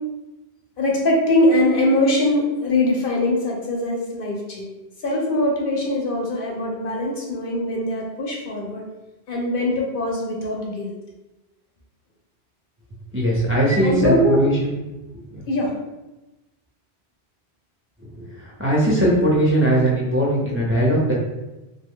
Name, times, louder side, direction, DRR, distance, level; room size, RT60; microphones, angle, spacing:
voice 1, 0.8-4.7 5.0-8.8 9.3-10.9 13.8-14.4 15.5-15.7, left 1 dB, 60° left, -2 dB, 0.8 m, -22 dB
voice 2, 13.1-14.7 15.3-15.5 18.2-21.1, right 1 dB, 15° right, -5 dB, 0.5 m, -20 dB
2.9 x 2.2 x 3.6 m, 1.0 s
omnidirectional pair, 1.1 m